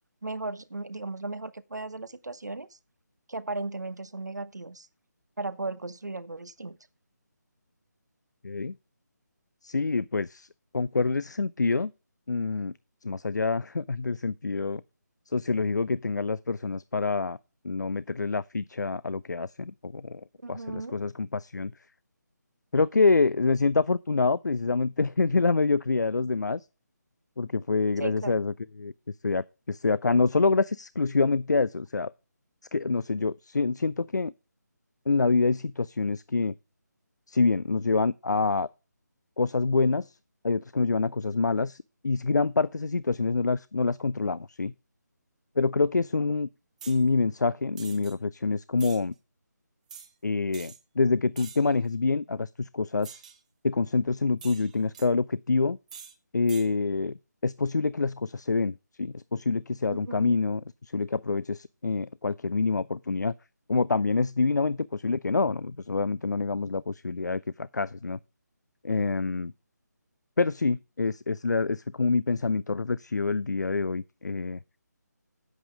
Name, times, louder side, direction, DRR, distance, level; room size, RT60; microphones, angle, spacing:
voice 1, 0.2-2.8 3.3-4.9 5.4-6.8 20.4-21.0 28.0-28.4 59.9-60.4, right 3 dB, 70° right, 0.9 m, -36 dB
voice 2, 8.4-8.7 9.6-10.5 10.7-11.9 12.3-12.7 13.0-14.8 15.3-17.4 17.6-21.7 22.7-26.7 27.4-28.9 29.2-32.1 32.7-34.3 35.1-36.6 37.3-38.7 39.4-40.2 40.4-44.7 45.6-46.5 46.9-49.1 50.2-53.2 53.6-55.8 56.3-57.2 57.4-63.3 63.7-68.2 68.8-69.5 70.4-74.6, left 4 dB, 70° left, 0.4 m, -26 dB
sound 1, 46.8-47.0 47.8-48.1 48.8-49.0 49.9-50.1 50.5-50.8 51.4-51.7 53.0-53.4 54.4-55.1 55.9-56.1 56.5-56.7, right 7 dB, 25° right, 0.8 m, -46 dB
8.5 x 8.0 x 4.9 m
figure-of-eight pair, 155°, 10 cm